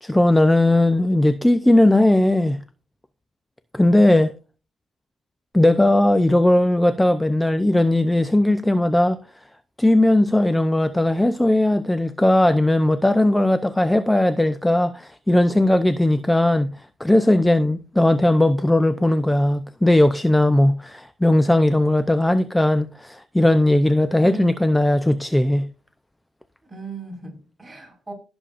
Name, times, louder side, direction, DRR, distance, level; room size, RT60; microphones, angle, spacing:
voice 1, 0.0-2.6 3.7-4.3 5.5-9.2 9.8-25.7, left 1 dB, 10° left, 0.6 m, -18 dB
voice 2, 24.2-24.6 26.6-28.1, right 3 dB, 15° right, 4.9 m, -36 dB
18.5 x 7.0 x 2.5 m
cardioid pair, 90°, 0 cm